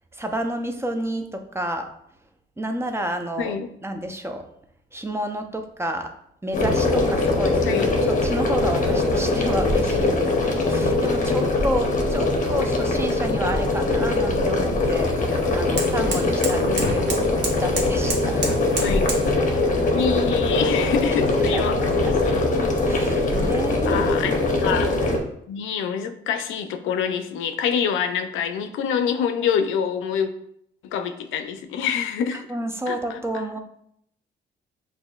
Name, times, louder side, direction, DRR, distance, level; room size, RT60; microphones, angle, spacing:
voice 1, 0.1-1.9 2.6-3.6 3.8-4.4 4.9-6.1 6.4-15.1 15.5-17.2 17.5-18.5 21.3-21.9 22.2-22.4 22.8-24.4 32.3-33.6, right 1 dB, 15° right, 5 dB, 0.5 m, -30 dB
voice 2, 3.4-3.7 7.6-7.8 11.3-11.5 16.5-16.9 18.8-19.1 19.9-22.5 23.9-24.9 25.5-30.3 30.8-32.5 32.9-33.2, left 7 dB, 85° left, 9 dB, 0.4 m, -26 dB
sound 1, 6.5-25.2, left 2 dB, 40° left, 0.9 m, -22 dB
sound 2, 13.5-19.3, right 2 dB, 60° right, 1.0 m, -33 dB
5.8 x 2.6 x 2.3 m, 0.72 s
cardioid pair, 90°, 20 cm